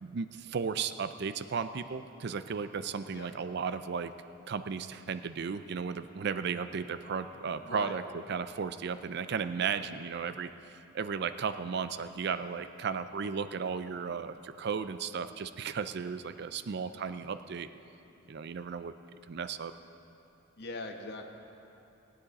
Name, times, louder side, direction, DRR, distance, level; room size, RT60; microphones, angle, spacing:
voice 1, 0.0-4.1 4.5-17.7 18.3-18.9 19.3-19.7, right 6 dB, 60° right, 11 dB, 0.4 m, -35 dB
voice 2, 7.6-8.0 9.6-9.9 20.6-21.3, left 2 dB, 60° left, 4 dB, 1.1 m, -41 dB
18.5 x 9.3 x 4.1 m, 3.0 s
head